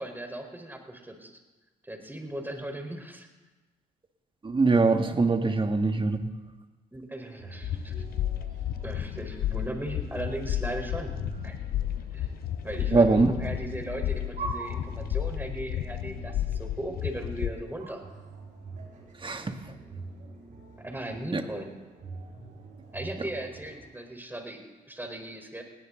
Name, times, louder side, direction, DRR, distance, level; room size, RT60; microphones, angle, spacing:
voice 1, 0.0-1.4 1.8-3.3 5.5-5.6 6.9-7.9 8.8-11.6 12.1-12.3 12.6-18.0 20.8-21.7 22.9-25.6, right 1 dB, 10° right, 4 dB, 4.3 m, -37 dB
voice 2, 4.4-6.3 12.9-13.3 19.2-19.6 21.3-21.4, right 3 dB, 30° right, 6 dB, 2.0 m, -23 dB
sound 1, 7.2-23.9, right 3 dB, 55° right, 6.0 m, -45 dB
sound 2, 7.6-17.5, left 11 dB, 65° left, 0.7 m, -32 dB
19.0 x 18.0 x 3.9 m, 1.2 s
hypercardioid pair, 50°, 16 cm